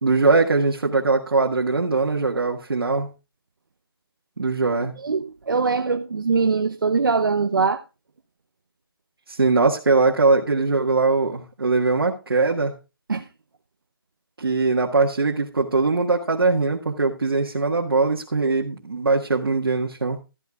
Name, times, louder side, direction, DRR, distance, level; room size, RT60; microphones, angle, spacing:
voice 1, 0.0-3.1 4.4-4.9 9.3-12.7 14.4-20.2, right 3 dB, 75° right, 1.6 m, -21 dB
voice 2, 5.0-7.8 13.1-13.3, right 4 dB, 60° right, 0.8 m, -22 dB
13.5 x 13.0 x 2.3 m
hypercardioid pair, 175°, 12 cm